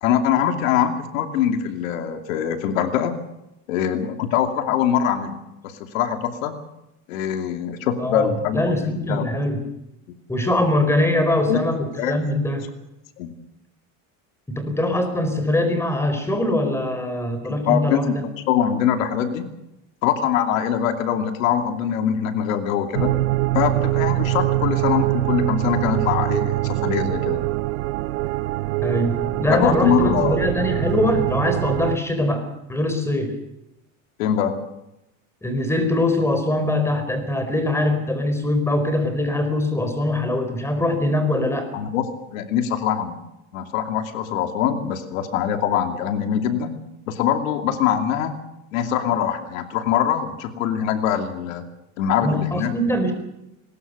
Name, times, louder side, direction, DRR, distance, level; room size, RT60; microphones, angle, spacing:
voice 1, 0.0-3.2 3.7-6.5 7.1-8.7 9.1-9.3 11.5-11.6 12.0-12.2 13.2-13.3 17.7-19.5 20.0-23.1 23.5-27.5 29.5-30.5 34.2-34.6 41.7-43.2 43.5-46.7 47.1-48.3 48.7-51.6 52.0-52.9, left 9 dB, 85° left, 6 dB, 2.7 m, -23 dB
voice 2, 8.0-9.6 10.3-12.7 14.5-18.2 28.8-33.3 35.4-41.7 52.2-53.1, left 1 dB, 5° left, 8 dB, 4.4 m, -22 dB
sound 1, 22.9-32.0, right 18 dB, 90° right, 0.8 m, -23 dB
22.0 x 20.5 x 6.9 m, 0.89 s
supercardioid pair, 135°, 39 cm